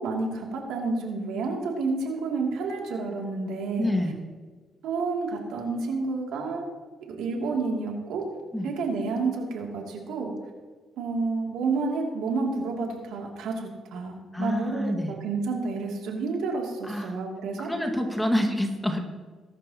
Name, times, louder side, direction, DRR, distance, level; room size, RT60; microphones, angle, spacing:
voice 1, 0.0-3.9 4.8-6.7 7.1-8.2 8.6-10.3 11.0-17.7, right 3 dB, 85° right, 0 dB, 2.7 m, -30 dB
voice 2, 3.8-4.1 8.5-8.7 14.3-15.1 16.8-17.2 17.6-19.0, left 1 dB, 5° left, 3 dB, 1.9 m, -27 dB
20.5 x 11.5 x 3.0 m, 1.4 s
cardioid pair, 90°, 0 cm